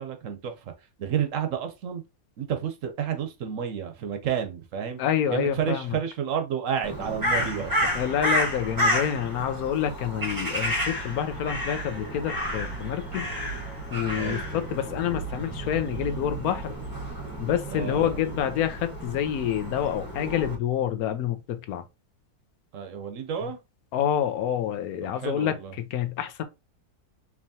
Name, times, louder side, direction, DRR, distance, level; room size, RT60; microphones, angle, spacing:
voice 1, 0.0-2.0 2.4-5.0 5.3-7.7 14.2-14.5 17.7-18.2 22.7-23.6 25.0-25.7, right 8 dB, 65° right, 1.0 m, -31 dB
voice 2, 5.0-5.8 7.9-13.3 13.9-16.7 17.4-21.8 23.9-25.6 25.9-26.4, left 9 dB, 80° left, 1.1 m, -27 dB
Crow, 6.8-20.5, equal, 15° right, 0.9 m, -31 dB
4.6 x 3.0 x 2.7 m
omnidirectional pair, 1.6 m